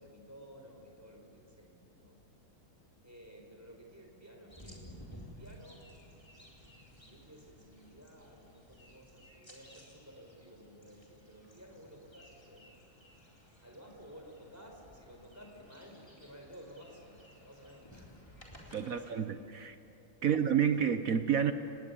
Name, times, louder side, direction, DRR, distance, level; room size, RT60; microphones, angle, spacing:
voice 1, 0.0-2.2 3.0-5.9 6.9-12.7 13.6-18.2 18.6-19.2 20.2-20.4, equal, 5° right, 1 dB, 4.6 m, -54 dB
sound 1, 4.5-19.1, equal, 10° left, 3.9 m, -56 dB
voice 2, 18.7-19.8 20.2-21.5, right 8 dB, 55° right, 9 dB, 1.0 m, -29 dB
30.0 x 19.5 x 8.4 m, 2.8 s
omnidirectional pair, 2.2 m